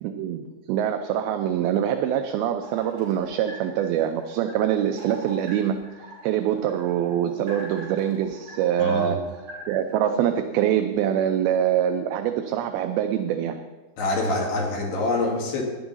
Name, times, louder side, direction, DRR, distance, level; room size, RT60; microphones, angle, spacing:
voice 1, 0.0-5.8 6.2-9.2 9.7-13.6, right 10 dB, 80° right, 7 dB, 2.3 m, -24 dB
sound 1, 2.6-10.0, right 2 dB, 50° right, 5.8 m, -44 dB
voice 2, 8.8-9.2 14.0-15.6, left 2 dB, 80° left, -1 dB, 4.1 m, -25 dB
13.5 x 10.5 x 4.1 m, 1.2 s
omnidirectional pair, 4.6 m